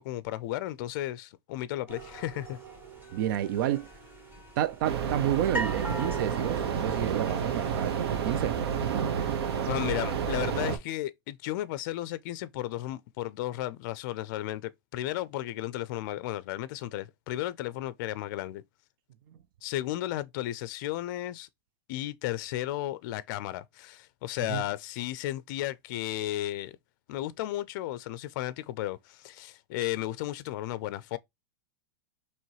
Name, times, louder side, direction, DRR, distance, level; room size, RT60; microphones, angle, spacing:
voice 1, 0.0-2.6 9.7-18.6 19.6-21.5 21.9-26.8 27.1-31.2, left 14 dB, 50° left, 0.4 m, -34 dB
sound 1, 1.9-8.3, right 1 dB, 15° right, 2.7 m, -41 dB
voice 2, 3.1-3.9 4.6-8.6 8.8-9.4 19.3-19.4 24.5-24.6, right 12 dB, 55° right, 0.5 m, -30 dB
sound 2, 4.8-10.8, right 7 dB, 75° right, 1.0 m, -30 dB
4.5 x 3.0 x 3.0 m
supercardioid pair, 150°, 13 cm